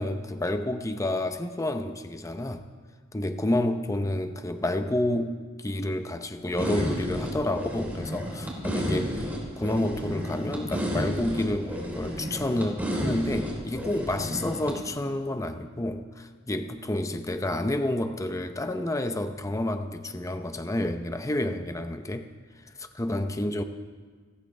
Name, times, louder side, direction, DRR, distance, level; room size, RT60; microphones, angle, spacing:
voice 1, 0.0-2.6 3.1-9.3 9.6-22.3 22.8-23.6, left 1 dB, 15° left, 8 dB, 0.7 m, -29 dB
sound 1, 6.6-14.7, equal, 10° right, 3.9 m, -31 dB
29.0 x 14.0 x 3.4 m, 1.5 s
head